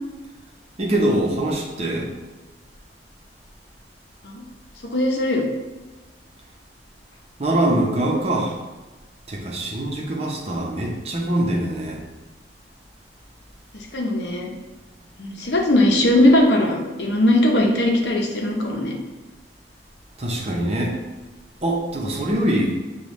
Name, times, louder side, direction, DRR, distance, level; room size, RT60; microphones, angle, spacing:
voice 1, 0.8-2.1 7.4-8.6 9.3-12.0 20.2-21.0 21.6-22.7, right 1 dB, 35° right, -1 dB, 0.8 m, -23 dB
voice 2, 4.9-5.4 13.9-14.5 15.2-18.9, left 1 dB, 75° left, 0 dB, 0.8 m, -19 dB
6.7 x 2.4 x 3.1 m, 1.2 s
head